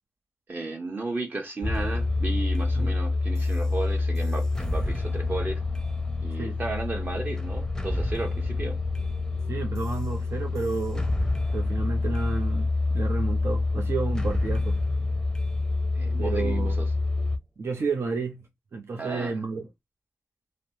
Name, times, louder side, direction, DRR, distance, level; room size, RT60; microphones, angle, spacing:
voice 1, 0.5-5.6 6.2-8.8 15.9-16.9 19.0-19.3, right 2 dB, 45° right, 1.2 m, -34 dB
sound 1, 1.6-17.4, left 3 dB, 10° left, 0.6 m, -27 dB
voice 2, 9.5-11.1 11.5-14.8 16.2-16.7 17.6-18.4 18.7-19.7, right 4 dB, 65° right, 0.7 m, -31 dB
3.2 x 2.1 x 2.6 m
cardioid pair, 45°, 5 cm